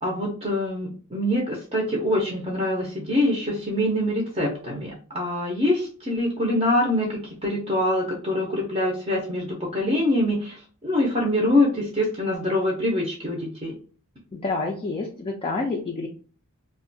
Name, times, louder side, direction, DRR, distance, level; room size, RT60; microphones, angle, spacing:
voice 1, 0.0-13.7, left 1 dB, 25° right, -1 dB, 0.5 m, -24 dB
voice 2, 14.3-16.1, left 3 dB, 25° left, 0 dB, 0.3 m, -28 dB
2.3 x 2.1 x 2.6 m, 0.41 s
head